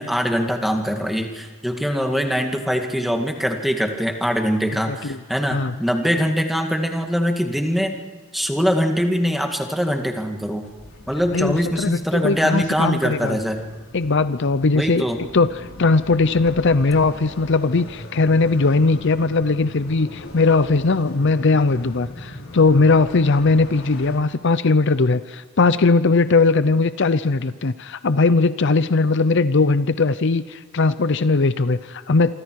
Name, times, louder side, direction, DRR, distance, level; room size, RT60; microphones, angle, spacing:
voice 1, 0.0-7.9 8.3-10.7 11.1-13.6 14.7-15.2, equal, ahead, 3 dB, 2.0 m, -22 dB
sound 1, 10.6-24.2, left 1 dB, 75° left, 4.5 m, -40 dB
voice 2, 11.3-13.3 13.9-15.0 15.3-15.5 15.8-32.3, left 3 dB, 60° left, 13 dB, 0.7 m, -19 dB
27.0 x 25.0 x 4.8 m, 1.5 s
head